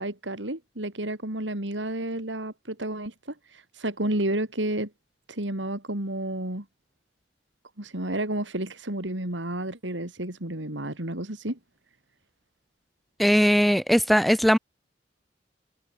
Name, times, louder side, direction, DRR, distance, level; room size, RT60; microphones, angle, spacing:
voice 1, 0.0-3.1 3.5-4.9 5.3-6.6 7.8-11.6, right 1 dB, 90° right, 4.1 m, -31 dB
voice 2, 13.2-14.6, equal, ahead, 4.0 m, -19 dB
head